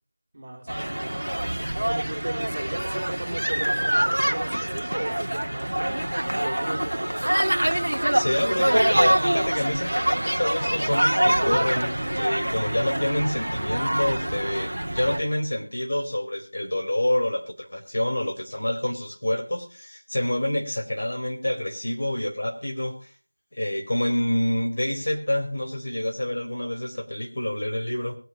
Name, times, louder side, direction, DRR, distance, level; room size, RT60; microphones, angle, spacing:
voice 1, 0.3-1.3 1.9-6.0 6.3-7.5, right 1 dB, 40° right, 2 dB, 3.8 m, -36 dB
sound 1, 0.7-15.2, right 1 dB, 75° right, 1.8 m, -25 dB
voice 2, 8.1-23.1 23.5-28.2, left 1 dB, 50° left, 0 dB, 4.5 m, -27 dB
23.0 x 8.8 x 3.1 m, 0.37 s
figure-of-eight pair, 175°, 0 cm